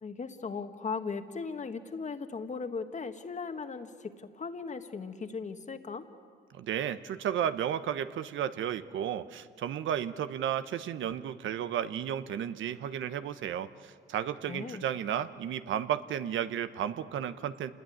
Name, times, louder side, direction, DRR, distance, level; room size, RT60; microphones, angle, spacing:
voice 1, 0.0-6.1 14.5-14.8, left 5 dB, 35° left, 8 dB, 1.6 m, -38 dB
voice 2, 6.6-13.7 14.1-17.7, right 9 dB, 75° right, 12 dB, 1.0 m, -33 dB
27.0 x 20.0 x 9.4 m, 2.2 s
cardioid pair, 90°, 20 cm